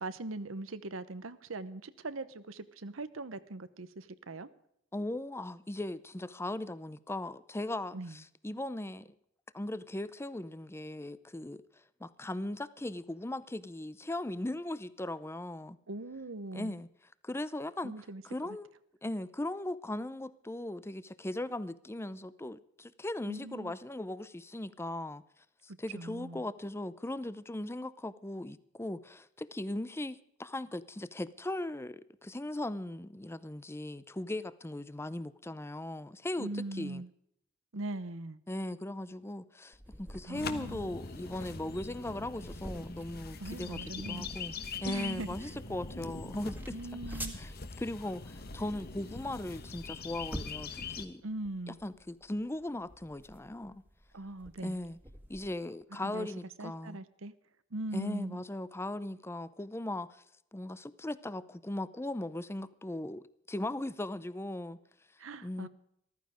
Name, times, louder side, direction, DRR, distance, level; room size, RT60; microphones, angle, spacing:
voice 1, 0.0-4.5 7.9-8.2 15.9-16.7 17.8-18.2 23.3-23.7 25.9-26.4 36.4-37.1 37.7-38.4 40.3-40.9 43.4-44.3 44.7-45.4 46.7-47.4 51.2-51.8 54.1-54.8 55.9-56.3 56.6-57.3 57.7-58.4 65.2-65.7, right 2 dB, 90° right, 0.9 m, -40 dB
voice 2, 4.9-9.1 9.5-11.6 12.0-15.8 16.5-16.9 17.2-17.9 18.2-18.7 19.0-25.2 25.6-37.0 38.5-43.8 44.1-44.5 44.8-46.6 47.1-47.5 47.8-51.2 51.7-53.8 54.6-55.0 55.3-57.0 57.9-60.2 60.5-64.8 65.4-65.7, left 1 dB, 15° left, 0.6 m, -38 dB
sound 1, 39.7-55.5, right 1 dB, 10° right, 1.9 m, -49 dB
sound 2, 40.3-51.0, left 4 dB, 50° left, 1.2 m, -43 dB
14.5 x 14.0 x 5.0 m
head